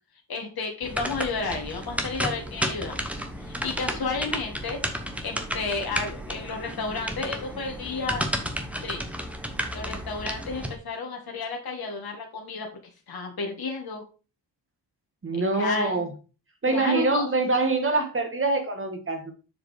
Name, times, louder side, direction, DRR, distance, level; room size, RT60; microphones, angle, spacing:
voice 1, 0.3-3.0 3.4-4.8 5.2-8.3 8.8-9.0 9.7-12.7 13.1-14.0 15.3-16.1 16.7-17.3, left 4 dB, 55° left, 1.8 m, -32 dB
sound 1, 0.8-10.7, equal, 5° right, 1.0 m, -32 dB
voice 2, 15.2-16.1 16.6-19.3, right 3 dB, 30° right, 1.6 m, -25 dB
7.0 x 5.0 x 4.8 m
wide cardioid pair, 160°, 43 cm